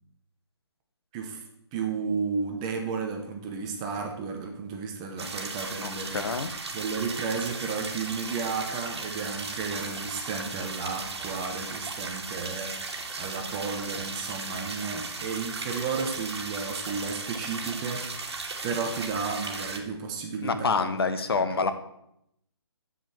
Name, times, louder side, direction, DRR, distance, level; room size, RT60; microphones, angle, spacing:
voice 1, 1.7-6.2 6.7-18.4 18.6-20.7 21.0-21.2, right 5 dB, 15° right, 2 dB, 0.9 m, -33 dB
sound 1, 5.2-19.8, right 3 dB, 70° right, 2.7 m, -36 dB
voice 2, 5.8-6.5 20.4-21.7, left 4 dB, 60° left, 10 dB, 1.2 m, -27 dB
7.8 x 7.7 x 7.6 m, 0.77 s
hypercardioid pair, 170°, 14 cm